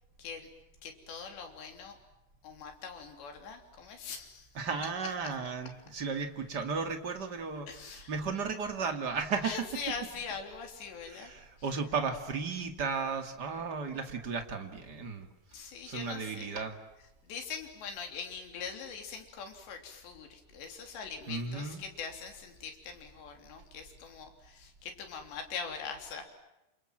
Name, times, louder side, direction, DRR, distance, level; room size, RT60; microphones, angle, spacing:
voice 1, 0.8-2.0 2.4-4.5 7.7-8.1 9.4-11.3 15.5-16.6 17.3-26.3, left 6 dB, 75° left, 5 dB, 5.5 m, -42 dB
voice 2, 4.5-9.7 11.0-15.3 15.9-16.8 21.3-21.8, right 5 dB, 35° right, 6 dB, 1.7 m, -35 dB
29.0 x 27.5 x 7.6 m, 0.92 s
omnidirectional pair, 5.1 m